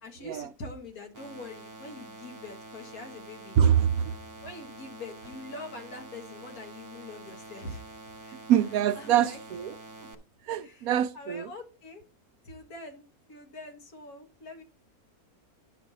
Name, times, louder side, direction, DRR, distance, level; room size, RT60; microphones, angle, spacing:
voice 1, 0.0-3.6 4.4-7.9 8.2-8.4 9.0-9.4 10.6-12.0 12.4-14.6, left 2 dB, 70° left, 2.1 m, -44 dB
sound 1, 1.1-10.1, right 2 dB, 15° right, 0.8 m, -47 dB
voice 2, 3.6-4.1 8.5-9.7 10.5-11.5, right 9 dB, 75° right, 1.0 m, -24 dB
9.6 x 5.9 x 4.1 m
omnidirectional pair, 1.6 m